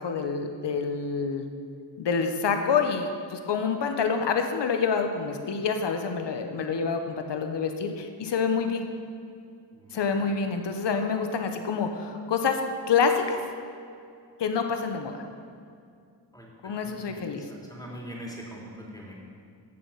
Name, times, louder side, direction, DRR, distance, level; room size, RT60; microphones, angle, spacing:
voice 1, 0.0-1.5 2.0-8.8 9.9-12.6 12.9-13.4 14.4-15.3 16.6-17.4, left 5 dB, 80° left, 6 dB, 1.1 m, -27 dB
voice 2, 16.8-19.1, equal, 10° left, -3 dB, 3.1 m, -42 dB
17.0 x 7.0 x 5.7 m, 2.4 s
wide cardioid pair, 85°, 42 cm